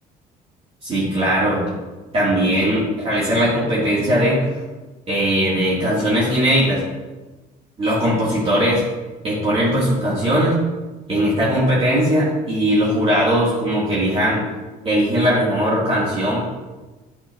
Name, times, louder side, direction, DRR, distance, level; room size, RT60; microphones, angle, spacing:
voice 1, 0.8-1.6 2.1-4.5 5.1-6.8 7.8-8.8 9.2-10.6 11.1-14.4 14.8-16.4, equal, 35° right, -8 dB, 2.4 m, -19 dB
9.0 x 5.8 x 2.7 m, 1.2 s
cardioid pair, 110°, 17 cm